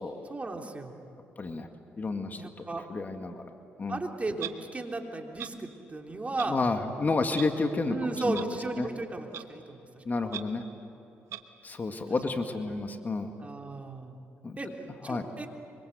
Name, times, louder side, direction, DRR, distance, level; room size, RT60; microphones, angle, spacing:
voice 1, 0.3-0.9 2.3-2.9 3.9-6.6 7.8-10.0 12.6-13.0 13.4-14.2 14.6-14.7 15.0-15.5, right 2 dB, 30° right, 3 dB, 3.3 m, -35 dB
voice 2, 2.0-2.4 2.9-3.4 3.8-4.0 6.5-8.0 8.2-8.4 8.8-8.9 10.1-10.6 11.6-13.3 14.4-14.6 15.0-15.3, left 3 dB, 35° left, 6 dB, 2.1 m, -30 dB
Clock, 4.4-4.5 5.4-5.5 6.4-6.5 7.3-7.5 8.3-8.4 9.3-9.4 10.3-10.4 11.3-11.4, right 11 dB, 75° right, 1.2 m, -37 dB
25.0 x 24.5 x 8.1 m, 2.9 s
supercardioid pair, 55°, 5 cm